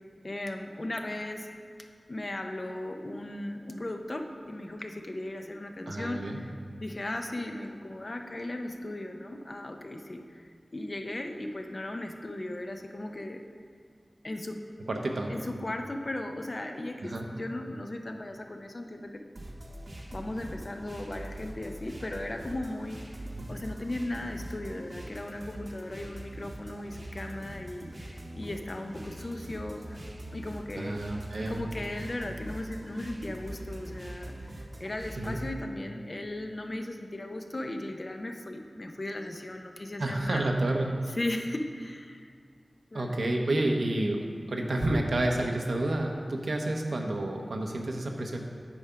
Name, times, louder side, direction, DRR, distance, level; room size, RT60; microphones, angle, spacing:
voice 1, 0.2-1.5 2.1-6.5 6.8-13.4 14.2-14.6 15.3-19.2 20.1-23.0 23.5-30.0 30.3-31.0 31.4-40.5 41.2-42.3 42.9-43.2, left 1 dB, 45° left, 4 dB, 0.7 m, -37 dB
voice 2, 5.9-6.4 14.9-15.3 17.0-17.3 23.3-23.5 30.7-31.7 35.1-35.4 40.0-40.9 42.9-48.4, right 1 dB, 80° right, 2 dB, 0.9 m, -30 dB
sound 1, 19.3-35.5, right 1 dB, 50° right, 1.0 m, -43 dB
8.7 x 4.9 x 5.7 m, 2.1 s
wide cardioid pair, 65°, 0 cm